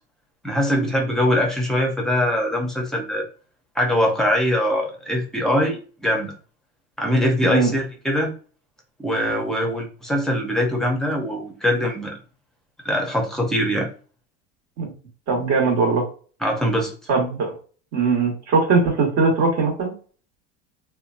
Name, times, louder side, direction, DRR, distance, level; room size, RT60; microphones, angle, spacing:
voice 1, 0.4-3.2 3.8-6.3 7.0-8.3 9.0-12.1 12.8-13.9 16.4-16.9, equal, ahead, 1 dB, 0.6 m, -22 dB
voice 2, 15.3-16.0 17.1-17.5 17.9-19.9, right 4 dB, 45° right, 1 dB, 1.2 m, -20 dB
2.8 x 2.2 x 2.5 m, 0.39 s
supercardioid pair, 120°, 36 cm